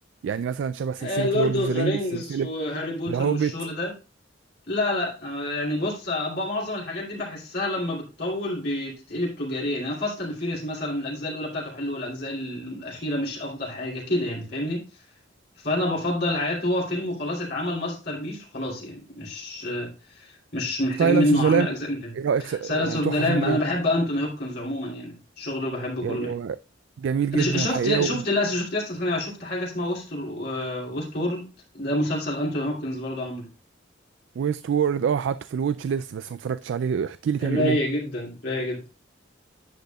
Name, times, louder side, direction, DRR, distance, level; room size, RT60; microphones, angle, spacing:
voice 1, 0.2-2.5 3.1-3.6 21.0-21.7 22.1-23.6 26.0-26.6 27.0-28.3 34.4-37.8, right 7 dB, 70° right, 0.3 m, -25 dB
voice 2, 1.0-3.9 4.7-14.8 15.6-22.0 22.5-26.3 27.3-31.5 31.7-33.5 37.4-38.8, left 1 dB, 55° left, 2.8 m, -28 dB
10.5 x 8.1 x 2.3 m
head